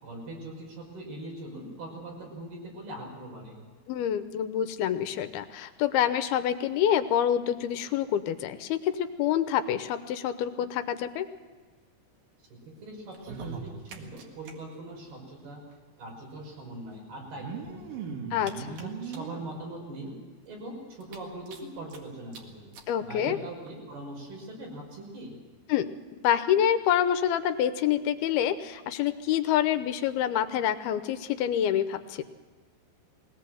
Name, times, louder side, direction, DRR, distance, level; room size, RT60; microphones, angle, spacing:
voice 1, 0.0-3.6 12.8-15.6 16.0-18.1 18.4-20.1 20.5-22.7 23.0-25.4, right 1 dB, 85° right, -1 dB, 7.3 m, -41 dB
voice 2, 3.9-11.3 18.3-18.8 22.9-23.4 25.7-25.9 26.2-32.2, left 10 dB, 80° left, 10 dB, 2.8 m, -27 dB
sound 1, 13.1-14.5 14.8-14.9 15.1-15.2 16.2-16.3 17.2-19.5 20.1-20.2 20.5-20.6 21.0-22.0 22.3-22.4 22.7-22.9 23.7-23.8, right 6 dB, 65° right, 3.4 m, -39 dB
21.0 x 17.5 x 7.8 m, 1.4 s
omnidirectional pair, 4.4 m